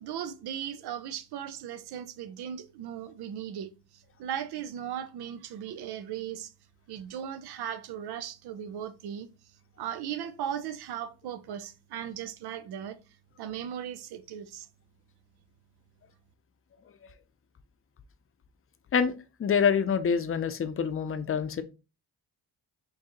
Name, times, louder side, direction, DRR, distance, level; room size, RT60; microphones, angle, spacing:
voice 1, 0.0-6.5 6.9-9.3 9.8-13.0 13.4-14.7, right 9 dB, 75° right, 0.6 m, -37 dB
voice 2, 19.4-21.6, left 6 dB, 35° left, 0.6 m, -26 dB
4.5 x 2.7 x 3.0 m
cardioid pair, 70°, 39 cm